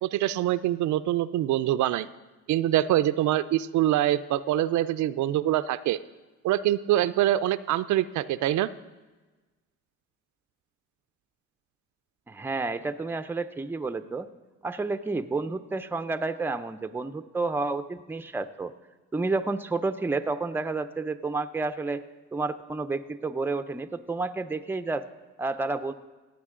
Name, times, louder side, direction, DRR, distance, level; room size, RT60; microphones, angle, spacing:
voice 1, 0.0-2.1 2.5-6.0 6.4-8.7, right 13 dB, 75° right, 14 dB, 0.4 m, -24 dB
voice 2, 12.3-14.3 14.6-18.7 19.1-22.0 22.3-25.0 25.4-25.9, right 3 dB, 5° right, 10 dB, 0.5 m, -30 dB
16.0 x 8.9 x 3.7 m, 1.2 s
cardioid pair, 90°, 30 cm